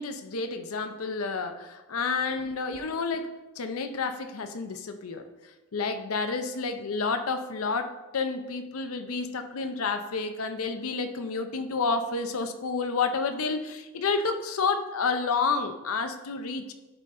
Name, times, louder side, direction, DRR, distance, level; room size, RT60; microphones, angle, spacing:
voice 1, 0.0-3.3 3.6-5.2 5.7-16.7, left 4 dB, 80° left, 7 dB, 0.6 m, -30 dB
11.5 x 3.9 x 3.7 m, 1.1 s
head